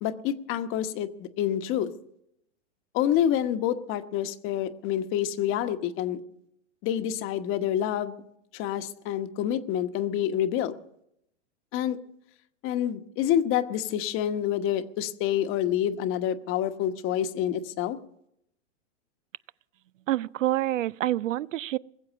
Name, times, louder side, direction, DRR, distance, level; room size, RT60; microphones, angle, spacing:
voice 1, 0.0-1.9 2.9-6.2 6.8-8.2 8.5-10.7 11.7-12.0 12.6-18.0, left 10 dB, 35° left, 1.1 m, -27 dB
voice 2, 20.1-21.8, right 14 dB, 90° right, 0.5 m, -27 dB
20.5 x 7.7 x 8.4 m
hypercardioid pair, 130°, 37 cm